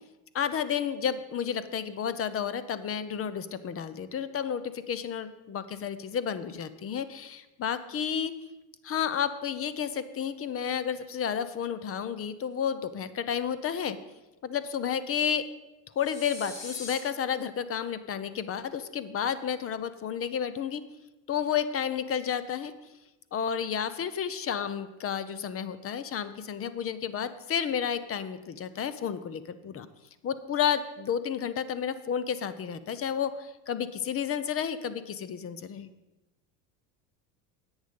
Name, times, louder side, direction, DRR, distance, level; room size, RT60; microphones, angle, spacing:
voice 1, 0.3-8.3 8.8-14.0 14.4-15.5 16.0-20.8 21.3-22.7 23.3-29.9 30.2-35.9, left 8 dB, 35° left, 14 dB, 0.8 m, -31 dB
sound 1, 16.0-17.0, left 3 dB, 65° left, 4.0 m, -41 dB
10.0 x 8.1 x 5.3 m, 1.0 s
supercardioid pair, 95°, 40 cm